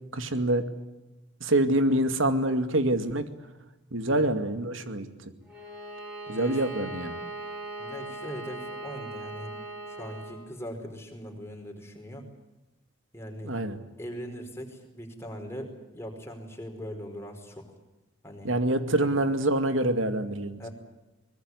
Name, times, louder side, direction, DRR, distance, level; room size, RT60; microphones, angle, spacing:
voice 1, 0.1-0.6 1.4-3.3 3.9-5.1 6.3-7.1 13.4-13.8 18.4-20.6, right 1 dB, 80° right, 9 dB, 2.4 m, -26 dB
Bowed string instrument, 5.5-10.4, right 2 dB, 5° right, 7.3 m, -39 dB
voice 2, 6.3-6.6 7.8-9.5 9.8-12.3 13.1-13.6 14.0-17.7 18.2-18.5 19.0-19.2 20.6-20.7, equal, 15° left, 3 dB, 4.8 m, -40 dB
24.0 x 20.5 x 9.8 m, 1.0 s
head